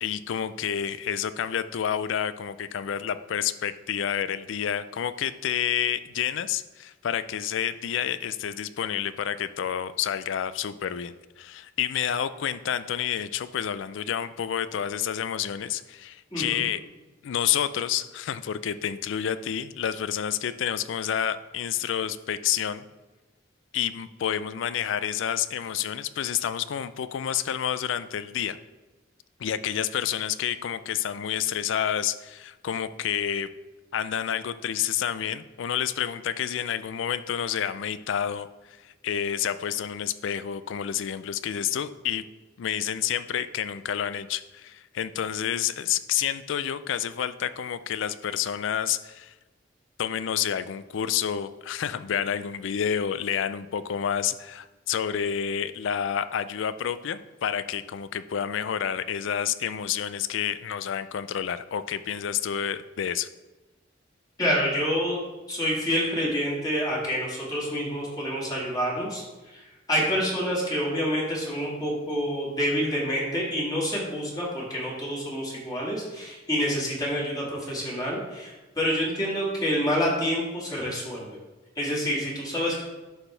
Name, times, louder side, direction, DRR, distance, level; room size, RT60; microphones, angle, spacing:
voice 1, 0.0-16.8 17.2-22.9 23.7-28.6 29.4-33.5 33.9-42.2 42.6-49.3 50.0-63.3, left 9 dB, 70° left, 14 dB, 0.4 m, -29 dB
voice 2, 64.4-65.2 65.5-69.2 69.5-81.4 81.8-82.8, equal, 20° left, -5 dB, 2.0 m, -27 dB
11.5 x 4.3 x 3.3 m, 1.1 s
head